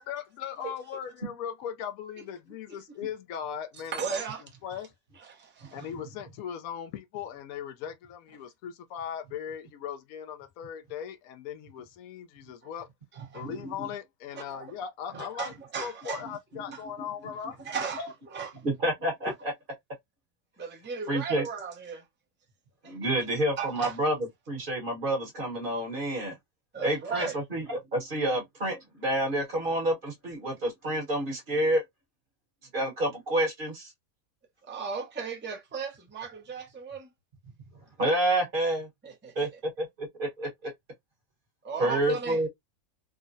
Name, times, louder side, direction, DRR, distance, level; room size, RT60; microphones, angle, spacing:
voice 1, 0.1-4.2 4.6-4.9 5.7-12.9 13.3-15.5 15.8-17.6 18.0-18.1, left 8 dB, 80° left, 1.0 m, -38 dB
voice 2, 3.8-4.4 5.2-5.9 13.3-13.5 14.3-14.7 15.1-16.2 16.7-16.8 17.6-18.0 18.3-18.5 19.2-19.3 20.6-22.0 22.8-23.1 23.6-24.0 26.7-27.4 34.7-37.1 39.0-39.5 41.6-42.5, right 6 dB, 15° right, 0.4 m, -36 dB
voice 3, 13.4-13.7 18.6-19.5 21.1-21.4 22.8-24.1 24.5-26.3 26.8-31.8 32.7-33.9 38.0-38.9 39.4-39.5 39.8-40.7 41.8-42.5, right 1 dB, 40° right, 1.1 m, -28 dB
3.7 x 2.0 x 2.5 m
omnidirectional pair, 1.5 m